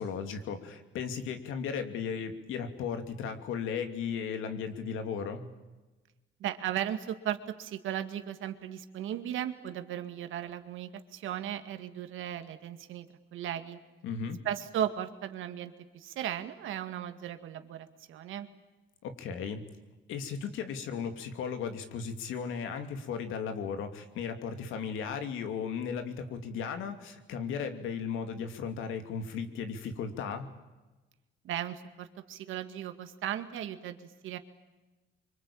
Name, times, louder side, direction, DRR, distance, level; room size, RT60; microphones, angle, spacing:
voice 1, 0.0-5.5 14.0-14.4 19.0-19.6 20.1-30.5, left 6 dB, 90° left, 7 dB, 2.9 m, -36 dB
voice 2, 6.4-13.1 13.3-13.8 14.4-18.5 31.4-34.4, right 10 dB, 85° right, 8 dB, 2.1 m, -36 dB
25.5 x 24.5 x 8.8 m, 1.1 s
cardioid pair, 90°, 20 cm